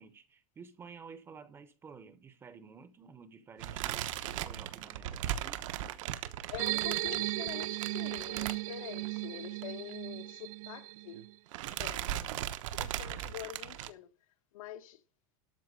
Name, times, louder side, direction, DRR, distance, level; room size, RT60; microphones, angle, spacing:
voice 1, 0.0-5.7, right 5 dB, 15° right, 0.7 m, -52 dB
sound 1, 3.6-9.2 9.4-9.6 9.9-10.0 11.0-11.2 11.5-13.9, right 12 dB, 70° right, 1.0 m, -38 dB
voice 2, 6.5-11.2 11.6-14.1 14.5-15.0, left 13 dB, 85° left, 1.3 m, -46 dB
sound 2, 6.6-11.3, right 20 dB, 85° right, 0.4 m, -36 dB
12.5 x 4.3 x 8.1 m
supercardioid pair, 175°, 17 cm